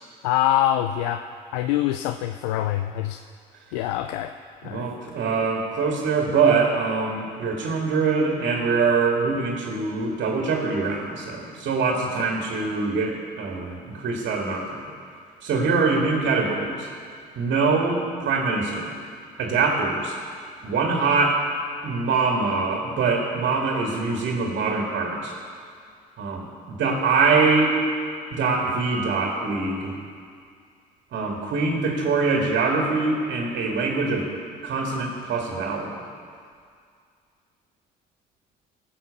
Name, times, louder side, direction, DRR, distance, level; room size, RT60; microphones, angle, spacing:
voice 1, 0.2-1.2 1.5-3.2 3.7-4.3 4.6-5.2 12.1-12.3, left 12 dB, 80° left, 9 dB, 0.4 m, -25 dB
voice 2, 4.6-14.9 15.4-16.9 17.4-18.9 19.4-20.1 20.6-21.4 21.8-25.3 26.2-27.8 28.3-29.9 31.1-34.3 34.6-36.0, right 4 dB, 55° right, 0 dB, 2.0 m, -23 dB
16.0 x 5.8 x 6.9 m, 2.2 s
hypercardioid pair, 60°, 21 cm